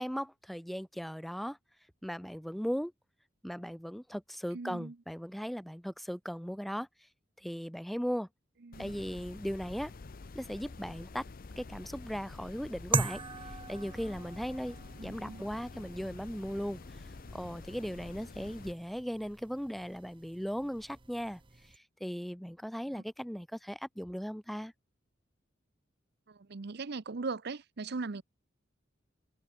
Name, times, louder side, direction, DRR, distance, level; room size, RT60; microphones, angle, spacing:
voice 1, 0.0-1.6 2.0-2.9 3.4-6.9 7.4-8.3 8.8-9.9 10.3-11.2 11.6-24.7, equal, ahead, 0.4 m, -38 dB
voice 2, 4.5-5.0 8.6-8.9 15.0-15.5 22.9-23.0 26.3-28.2, right 4 dB, 60° right, 0.7 m, -39 dB
sound 1, 8.7-18.7, left 3 dB, 50° left, 0.6 m, -48 dB
sound 2, 12.9-21.8, right 4 dB, 25° right, 1.0 m, -40 dB
head